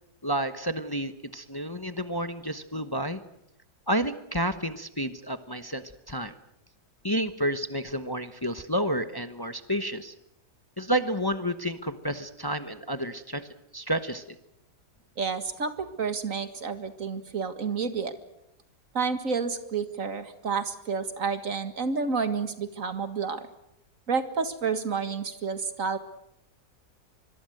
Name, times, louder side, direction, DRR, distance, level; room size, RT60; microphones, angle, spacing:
voice 1, 0.2-3.2 3.9-6.3 7.0-10.1 10.8-13.5 13.7-14.2, equal, 15° left, 10 dB, 0.8 m, -30 dB
voice 2, 15.2-18.1 18.9-23.5 24.1-26.0, right 5 dB, 50° right, 9 dB, 2.2 m, -30 dB
25.0 x 22.5 x 7.9 m, 0.83 s
omnidirectional pair, 1.8 m